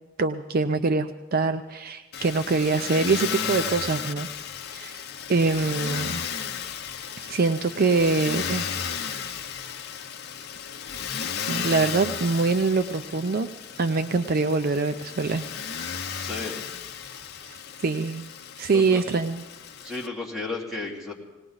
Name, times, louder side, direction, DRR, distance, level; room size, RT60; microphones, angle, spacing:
voice 1, 0.2-4.3 4.7-4.9 5.3-6.2 7.2-8.7 11.5-13.5 13.8-15.5 17.5-17.6 17.8-18.3 18.6-19.4, right 3 dB, 45° right, 9 dB, 0.5 m, -24 dB
Motor vehicle (road), 2.1-20.1, left 7 dB, 55° left, 0.7 m, -34 dB
voice 2, 16.2-16.6 18.7-19.0 19.8-21.1, left 3 dB, ahead, -3 dB, 2.6 m, -33 dB
19.0 x 18.5 x 4.0 m, 1.1 s
head